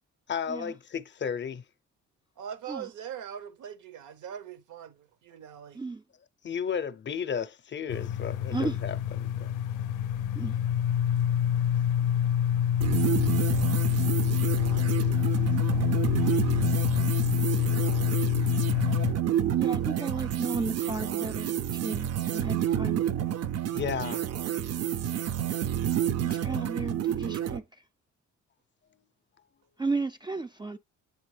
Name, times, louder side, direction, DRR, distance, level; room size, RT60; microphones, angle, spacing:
voice 1, 0.3-1.6 6.4-9.5 23.7-24.3, left 7 dB, 40° left, 0.6 m, -33 dB
voice 2, 2.4-5.8, right 8 dB, 75° right, 1.1 m, -41 dB
sound 1, 7.9-19.1, left 9 dB, 85° left, 0.5 m, -26 dB
voice 3, 8.5-8.8 10.4-10.5 19.6-23.0 26.2-27.6 29.8-30.8, right 3 dB, 15° right, 0.3 m, -34 dB
sound 2, 12.8-27.6, right 10 dB, 55° right, 0.6 m, -29 dB
8.8 x 3.6 x 3.3 m
cardioid pair, 90°, 30 cm